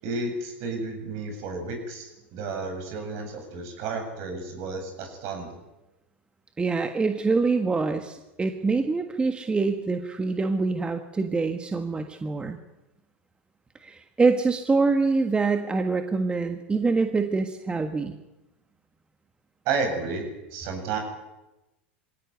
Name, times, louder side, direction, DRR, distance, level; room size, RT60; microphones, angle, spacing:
voice 1, 0.0-5.6 19.6-21.0, right 4 dB, 55° right, 5 dB, 7.9 m, -32 dB
voice 2, 6.6-12.6 13.8-18.2, right 4 dB, 15° right, 7 dB, 1.6 m, -25 dB
22.0 x 17.0 x 9.4 m, 0.98 s
hypercardioid pair, 100°, 6 cm